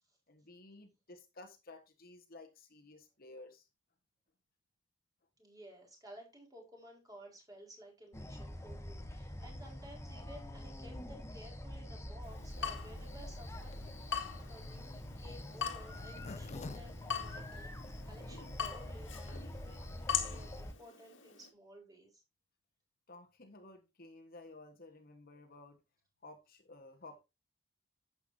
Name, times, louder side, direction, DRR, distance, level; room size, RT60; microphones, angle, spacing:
voice 1, 0.3-3.7 23.1-25.8 26.2-27.2, left 2 dB, 50° left, 1.4 m, -54 dB
voice 2, 5.4-13.8 14.1-17.7 18.0-22.2, equal, 20° right, 4.7 m, -55 dB
sound 1, 8.1-20.7, left 1 dB, 15° left, 0.9 m, -46 dB
Water tap faucet / Drip, 12.2-21.5, left 7 dB, 75° left, 2.0 m, -42 dB
Zipper (clothing), 13.7-18.0 18.5-18.6 18.7-18.8 19.1-19.4, left 3 dB, 35° left, 0.4 m, -50 dB
11.5 x 8.2 x 2.8 m
head